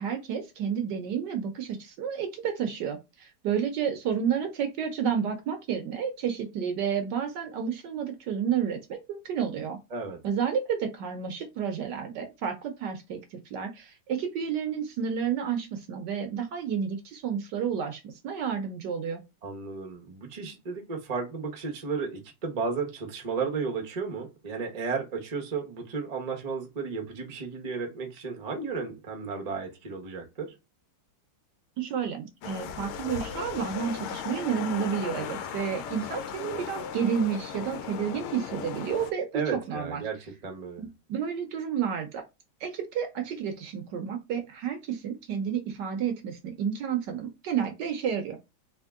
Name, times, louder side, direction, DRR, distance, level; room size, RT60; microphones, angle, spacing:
voice 1, 0.0-9.8 10.2-19.2 31.8-39.4 39.7-40.0 40.8-42.2 42.6-48.4, right 7 dB, 65° right, 1.2 m, -31 dB
voice 2, 19.4-30.5 39.3-40.2 40.4-40.9, right 5 dB, 35° right, 0.6 m, -33 dB
sound 1, 32.4-39.1, left 7 dB, 85° left, 1.5 m, -37 dB
3.6 x 2.8 x 3.5 m
omnidirectional pair, 2.3 m